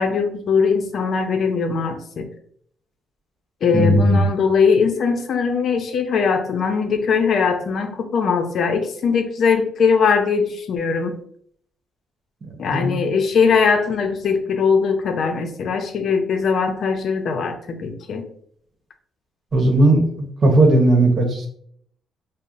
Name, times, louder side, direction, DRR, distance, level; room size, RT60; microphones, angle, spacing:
voice 1, 0.0-2.3 3.6-11.2 12.6-18.3, left 5 dB, 60° left, 6 dB, 0.5 m, -20 dB
voice 2, 3.7-4.2 12.4-13.0 19.5-20.1 20.4-21.5, right 1 dB, 45° right, 2 dB, 1.0 m, -16 dB
5.4 x 2.0 x 2.5 m, 0.65 s
cardioid pair, 90°, 0 cm